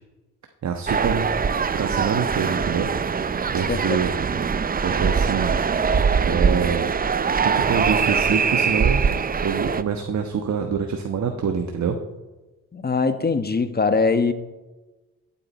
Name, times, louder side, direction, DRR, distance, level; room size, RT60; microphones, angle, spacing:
voice 1, 0.6-1.3 1.7-2.9 3.5-4.1 4.8-5.6 6.2-6.9 7.4-9.0 9.4-11.9, right 6 dB, 50° right, 4 dB, 1.3 m, -25 dB
sound 1, 0.9-9.8, right 6 dB, 25° right, 0.6 m, -22 dB
voice 2, 3.7-4.0 12.7-14.3, left 4 dB, 30° left, 10 dB, 1.3 m, -22 dB
14.0 x 8.8 x 4.4 m, 1.1 s
supercardioid pair, 60°, 35 cm